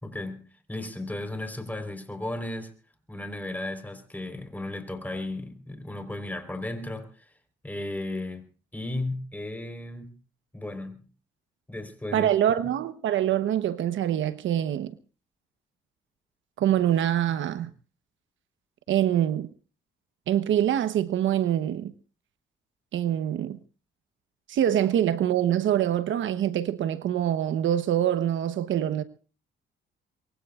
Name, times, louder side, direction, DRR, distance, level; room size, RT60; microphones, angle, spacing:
voice 1, 0.0-2.7 3.1-7.1 7.6-8.5 8.7-10.1 10.5-11.0 11.7-12.3, left 2 dB, 10° left, 4.1 m, -35 dB
voice 2, 12.1-14.9 16.6-17.7 18.9-19.5 20.3-21.9 22.9-23.6 24.5-29.0, right 11 dB, 75° right, 1.1 m, -25 dB
24.0 x 22.5 x 2.5 m
cardioid pair, 90°, 20 cm